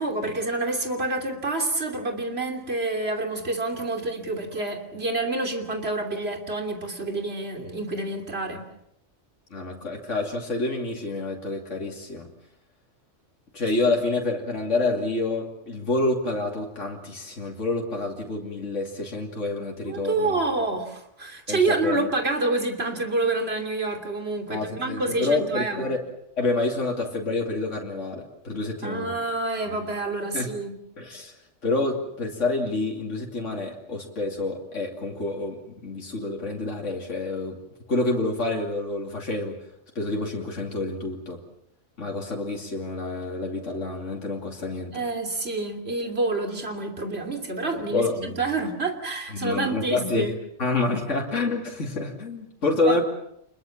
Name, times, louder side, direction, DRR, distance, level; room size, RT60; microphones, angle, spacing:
voice 1, 0.0-8.6 19.8-25.9 28.8-30.8 44.9-50.3 52.9-53.0, right 2 dB, 55° right, 4 dB, 3.3 m, -28 dB
voice 2, 9.5-12.3 13.5-20.4 21.5-22.1 24.5-26.0 26.4-29.2 29.7-29.8 30.3-30.5 31.0-31.3 31.6-37.6 37.9-39.6 39.9-41.4 42.0-45.0 47.8-48.4 49.3-50.3 50.6-53.0, left 2 dB, 80° left, 0 dB, 3.1 m, -28 dB
27.0 x 21.5 x 7.3 m, 0.76 s
omnidirectional pair, 1.2 m